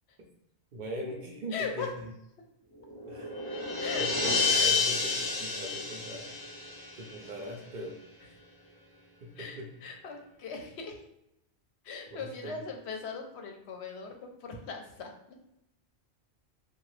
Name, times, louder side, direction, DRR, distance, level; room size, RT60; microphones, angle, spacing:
voice 1, 0.7-1.9 3.1-3.3 3.9-6.2 7.0-8.0 9.2-9.7 12.1-12.6, equal, 60° right, 0 dB, 0.6 m, -40 dB
voice 2, 1.5-1.9 3.8-4.1 4.5-4.7 7.2-7.3 9.4-11.0 11.8-15.1, left 5 dB, 75° left, 3 dB, 0.8 m, -39 dB
sound 1, 2.8-7.4, left 4 dB, 35° left, 0.4 m, -30 dB
2.9 x 2.2 x 3.1 m, 0.81 s
omnidirectional pair, 1.1 m